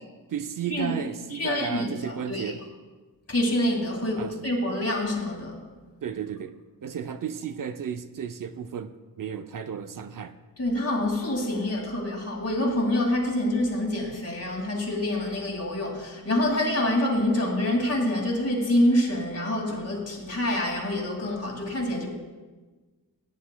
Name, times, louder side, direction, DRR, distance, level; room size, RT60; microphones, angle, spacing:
voice 1, 0.3-2.6 4.2-4.5 6.0-10.3, right 8 dB, 60° right, 9 dB, 0.5 m, -34 dB
voice 2, 1.3-2.5 3.3-5.6 10.6-22.1, left 1 dB, 40° left, 0 dB, 2.2 m, -26 dB
16.5 x 9.5 x 2.2 m, 1.3 s
wide cardioid pair, 110°, 36 cm